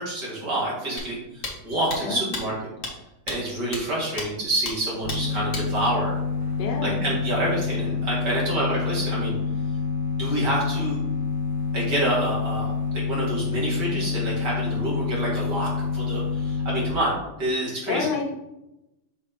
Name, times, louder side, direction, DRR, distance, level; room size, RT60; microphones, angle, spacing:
voice 1, 0.0-2.5 3.3-6.1 6.8-9.4 10.2-11.0 11.7-18.1, right 1 dB, 80° right, -5 dB, 2.8 m, -28 dB
sound 1, 1.0-1.1 1.4-1.5 1.9-2.0 2.3-2.4 2.8-2.9 3.3-3.4 3.7-3.8 4.2-4.3 4.7-4.8 5.1-5.2 5.5-5.6, left 3 dB, 50° left, 1.5 m, -31 dB
sound 2, 5.0-16.9, left 4 dB, 35° right, 1.5 m, -27 dB
voice 2, 6.6-7.0 17.9-18.3, left 5 dB, 85° left, 1 dB, 1.5 m, -28 dB
6.4 x 3.0 x 5.0 m, 0.92 s
omnidirectional pair, 1.8 m